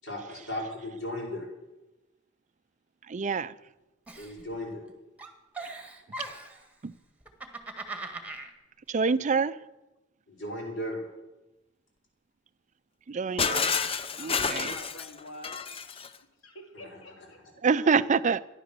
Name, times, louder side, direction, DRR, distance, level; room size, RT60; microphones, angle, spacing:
voice 1, 0.0-1.5 4.2-4.8 10.3-11.0 16.7-16.9 17.2-17.3, left 1 dB, 70° left, -2 dB, 5.7 m, -36 dB
voice 2, 3.1-3.5 6.8-6.9 8.9-9.6 13.1-13.8 14.2-14.7 17.6-18.4, right 5 dB, 35° right, 17 dB, 0.4 m, -26 dB
Giggle, 4.1-4.9 5.2-6.7 7.2-8.5, right 2 dB, 5° right, 1.5 m, -40 dB
Shatter, 13.4-16.2, left 5 dB, 30° left, 0.6 m, -29 dB
voice 3, 14.5-15.6 16.4-18.1, left 1 dB, 85° left, 4 dB, 2.5 m, -47 dB
14.5 x 11.0 x 6.8 m, 1.0 s
head